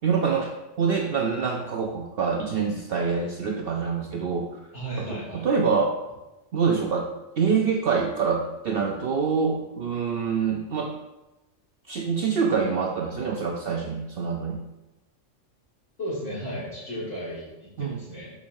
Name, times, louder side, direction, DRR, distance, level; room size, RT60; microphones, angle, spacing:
voice 1, 0.0-0.5 0.8-4.5 5.0-6.0 6.5-10.9 11.9-14.6 17.8-18.0, right 5 dB, 55° right, 1 dB, 0.8 m, -25 dB
voice 2, 4.7-5.5 16.0-18.3, equal, 75° left, -12 dB, 2.6 m, -34 dB
12.5 x 5.0 x 2.6 m, 1.0 s
omnidirectional pair, 1.3 m